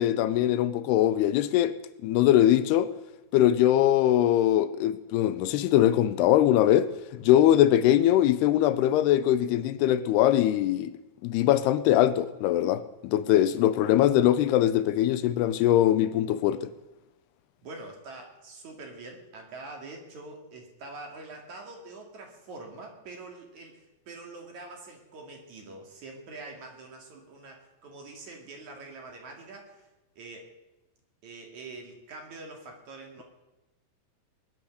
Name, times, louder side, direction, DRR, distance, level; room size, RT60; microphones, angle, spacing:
voice 1, 0.0-1.7 2.0-2.9 3.3-10.9 11.2-16.7, left 12 dB, 85° left, 2.7 m, -22 dB
voice 2, 17.6-29.9 30.2-30.5 31.2-33.2, right 3 dB, 50° right, 3.3 m, -44 dB
21.5 x 10.0 x 6.5 m
omnidirectional pair, 4.6 m